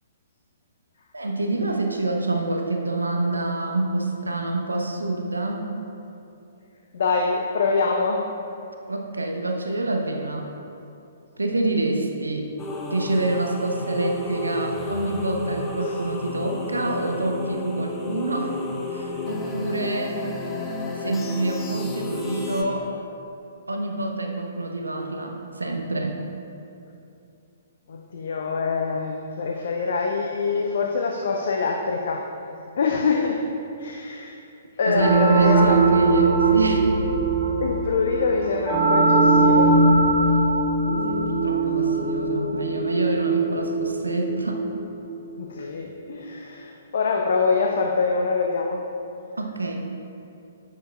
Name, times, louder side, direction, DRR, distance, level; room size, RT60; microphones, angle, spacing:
voice 1, 1.1-5.7 8.9-10.5 11.4-12.5 12.9-18.6 18.9-20.2 21.0-22.9 23.7-26.2 34.9-36.9 40.9-44.6 49.4-49.8, right 2 dB, 80° right, 2 dB, 0.8 m, -26 dB
voice 2, 6.9-8.3 15.8-15.9 27.9-32.2 32.8-33.5 33.8-34.3 34.8-35.8 37.6-39.7 45.4-48.8, left 4 dB, 55° left, 1 dB, 0.6 m, -24 dB
sound 1, 12.6-22.6, left 3 dB, 15° left, 0.9 m, -32 dB
sound 2, 35.0-45.4, right 3 dB, 30° right, 1.1 m, -21 dB
9.9 x 8.2 x 2.4 m, 2.7 s
figure-of-eight pair, 120°, 0 cm